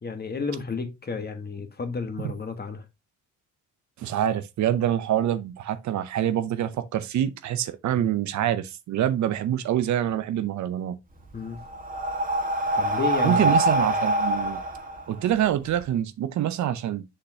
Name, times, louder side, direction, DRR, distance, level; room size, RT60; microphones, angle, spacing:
voice 1, 0.0-2.8 8.0-8.2 11.3-11.6 12.8-13.5, left 4 dB, 30° left, 1.5 m, -32 dB
voice 2, 4.0-11.0 13.2-14.6 15.1-17.0, right 11 dB, 70° right, 0.8 m, -26 dB
Breathing, 11.1-15.8, right 1 dB, 30° right, 1.7 m, -25 dB
6.7 x 5.7 x 2.8 m
cardioid pair, 90°, 30 cm